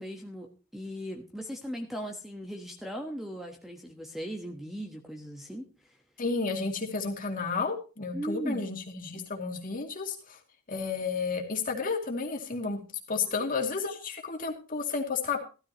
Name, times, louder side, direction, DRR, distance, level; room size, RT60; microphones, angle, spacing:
voice 1, 0.0-6.0 8.1-8.6 13.3-13.5, equal, ahead, 2 dB, 1.2 m, -38 dB
voice 2, 6.2-10.4 10.7-12.8 13.1-15.4, left 4 dB, 40° left, 2 dB, 2.5 m, -32 dB
15.0 x 13.5 x 3.0 m, 0.33 s
head